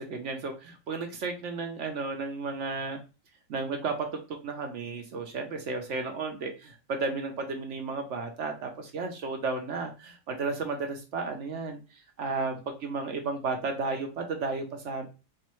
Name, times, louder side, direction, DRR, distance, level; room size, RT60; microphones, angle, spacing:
voice 1, 0.0-3.0 3.5-15.1, right 4 dB, 65° right, 4 dB, 0.7 m, -33 dB
4.5 x 2.5 x 2.9 m, 0.31 s
omnidirectional pair, 1.8 m